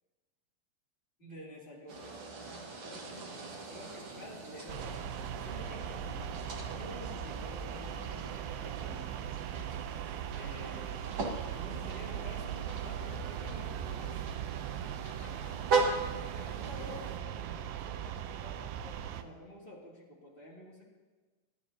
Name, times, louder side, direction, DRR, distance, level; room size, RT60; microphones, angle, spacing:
voice 1, 1.2-2.2 2.8-3.3 3.7-6.3 6.7-9.1 10.3-11.0 11.5-14.2 15.0-15.8 16.3-20.9, left 1 dB, 15° left, -4 dB, 2.0 m, -50 dB
sound 1, 1.9-17.2, right 4 dB, 50° right, 1.4 m, -39 dB
sound 2, 4.7-19.2, right 10 dB, 80° right, 2.5 m, -39 dB
28.0 x 9.8 x 2.8 m, 1.3 s
omnidirectional pair, 4.7 m